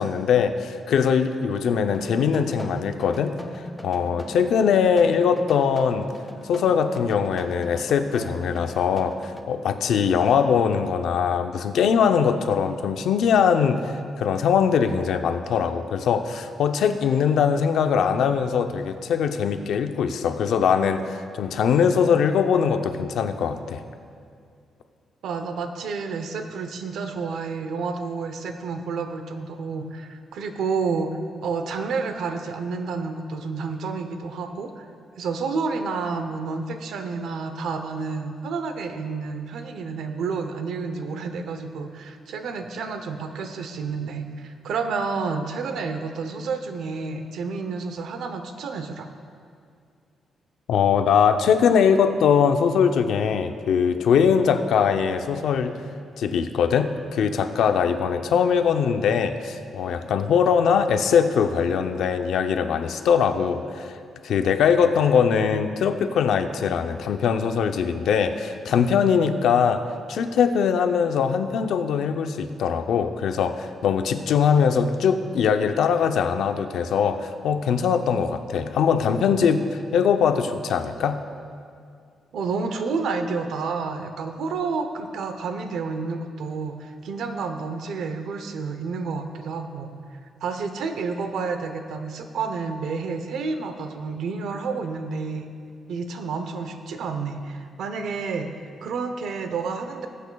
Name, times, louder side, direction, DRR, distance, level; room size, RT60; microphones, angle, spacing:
voice 1, 0.0-6.1 6.5-23.8 50.7-55.7 56.2-69.8 70.1-81.2, left 7 dB, 70° left, 8 dB, 0.6 m, -21 dB
sound 1, 1.9-9.4, left 1 dB, 5° left, 0.5 m, -40 dB
voice 2, 25.2-31.1 31.4-34.8 35.2-49.1 82.3-89.9 90.4-95.5 95.9-98.5 98.8-100.1, right 4 dB, 75° right, 7 dB, 0.7 m, -30 dB
19.0 x 8.3 x 2.3 m, 2.3 s
cardioid pair, 160°, 0 cm